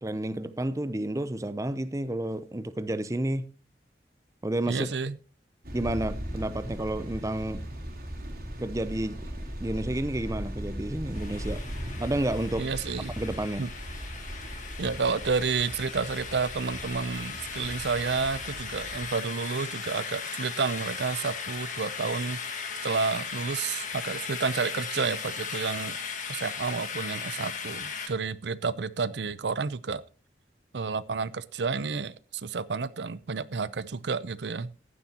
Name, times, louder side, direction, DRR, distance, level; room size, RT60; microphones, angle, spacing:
voice 1, 0.0-3.5 4.4-4.9 5.7-7.6 8.6-9.2 9.6-11.6 12.0-12.7 13.1-13.6, right 1 dB, 20° right, 0.6 m, -30 dB
voice 2, 4.7-5.2 12.6-13.1 13.6-13.7 14.8-26.0 26.3-30.0 30.7-34.8, right 5 dB, 80° right, 0.6 m, -30 dB
sound 1, 5.6-19.1, equal, 60° right, 3.4 m, -38 dB
sound 2, 11.1-28.1, left 6 dB, 45° left, 1.9 m, -37 dB
15.0 x 11.0 x 2.9 m
head